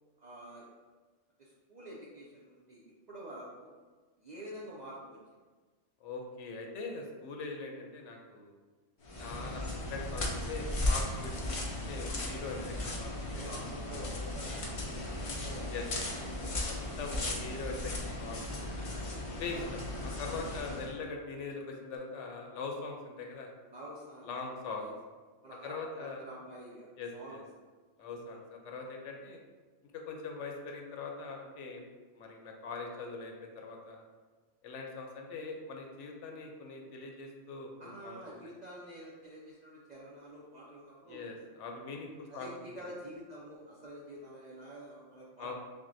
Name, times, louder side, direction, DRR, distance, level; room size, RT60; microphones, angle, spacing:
voice 1, 0.2-0.7 1.4-3.7 4.2-5.2 9.1-9.3 13.3-15.7 16.2-17.3 18.8-18.9 19.5-19.7 20.5-20.7 23.7-24.3 24.7-24.9 25.4-27.4 28.0-28.2 37.8-41.2 42.3-45.5, right 1 dB, 55° right, -5 dB, 0.4 m, -48 dB
voice 2, 6.0-8.5 9.2-13.5 15.7-15.9 16.4-18.7 19.3-19.6 20.0-23.5 24.2-24.9 25.6-26.2 27.0-27.4 28.0-29.4 29.9-31.8 32.2-34.0 34.6-38.2 41.1-42.7 45.4-45.5, left 4 dB, 75° left, 2 dB, 0.9 m, -42 dB
sound 1, 9.0-20.9, left 1 dB, 60° left, 0.3 m, -36 dB
6.0 x 2.1 x 2.6 m, 1.4 s
omnidirectional pair, 1.3 m